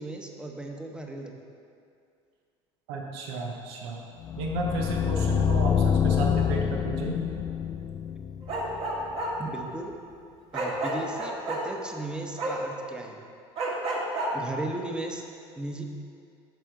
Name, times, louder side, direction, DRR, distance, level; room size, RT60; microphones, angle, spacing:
voice 1, 0.0-1.3 9.4-9.9 10.5-13.2 14.3-15.2 15.6-15.8, right 2 dB, 5° right, 2 dB, 0.9 m, -36 dB
voice 2, 2.9-4.0 4.4-7.3, right 3 dB, 85° right, 1 dB, 1.0 m, -33 dB
sound 1, 4.2-9.2, left 7 dB, 30° left, 0.3 m, -26 dB
Bark, 8.4-9.3 10.5-11.6 12.4-12.5 13.6-14.3, right 2 dB, 45° right, 1.9 m, -30 dB
9.2 x 6.2 x 3.9 m, 2.4 s
supercardioid pair, 100°, 13 cm